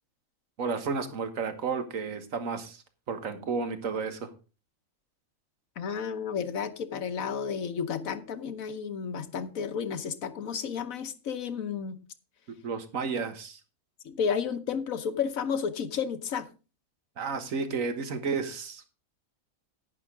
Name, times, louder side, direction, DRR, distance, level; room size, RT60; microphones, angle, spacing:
voice 1, 0.6-4.3 12.6-13.6 17.2-18.9, right 5 dB, 75° right, 1.7 m, -32 dB
voice 2, 5.8-12.0 14.0-16.5, left 7 dB, 80° left, 1.4 m, -32 dB
10.5 x 10.5 x 3.7 m
omnidirectional pair, 1.4 m